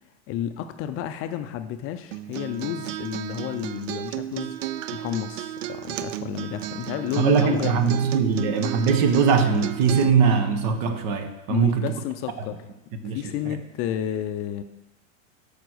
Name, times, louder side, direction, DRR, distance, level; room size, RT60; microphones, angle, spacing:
voice 1, 0.3-4.6 4.9-7.8 11.5-12.6 13.0-14.6, left 11 dB, 35° left, 9 dB, 0.5 m, -31 dB
Acoustic guitar, 2.1-10.1, right 12 dB, 75° right, 0.6 m, -33 dB
voice 2, 7.2-11.9 13.0-13.2 13.5-13.6, right 6 dB, 50° right, 8 dB, 1.1 m, -21 dB
6.7 x 5.1 x 6.3 m, 0.97 s
hypercardioid pair, 110°, 39 cm